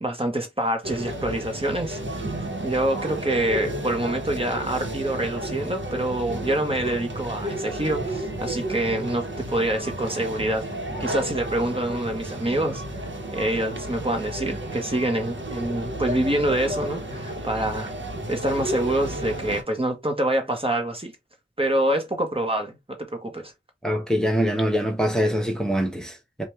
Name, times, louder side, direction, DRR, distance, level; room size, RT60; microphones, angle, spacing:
voice 1, 0.0-10.6 11.0-12.8 13.3-17.9 18.3-21.1 21.6-23.5, right 1 dB, 30° right, 1.3 m, -26 dB
sound 1, 0.8-19.6, right 1 dB, 80° right, 1.2 m, -32 dB
voice 2, 23.8-26.4, equal, 5° left, 1.1 m, -24 dB
5.1 x 2.5 x 3.3 m
wide cardioid pair, 55°, 19 cm